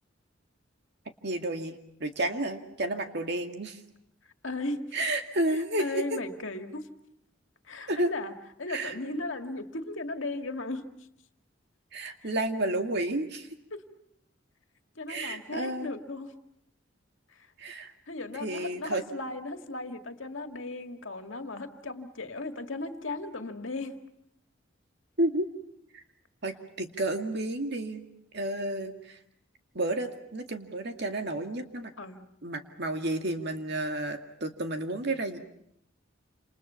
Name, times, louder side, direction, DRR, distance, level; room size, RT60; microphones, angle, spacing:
voice 1, 1.2-3.8 4.9-6.2 7.9-8.1 8.7-9.0 11.9-13.5 15.1-15.9 17.6-17.9 18.3-19.0 25.2-25.5 25.9-26.0 26.4-28.1 28.3-29.2 29.7-31.9 32.4-35.4, right 1 dB, 60° right, 5 dB, 2.2 m, -31 dB
voice 2, 4.4-4.9 5.5-6.9 7.6-8.3 8.6-10.9 12.2-12.3 13.7-13.8 15.0-16.3 17.3-17.5 18.1-24.0 32.0-32.3, left 2 dB, 80° left, 6 dB, 2.0 m, -36 dB
29.0 x 28.0 x 5.7 m, 0.75 s
head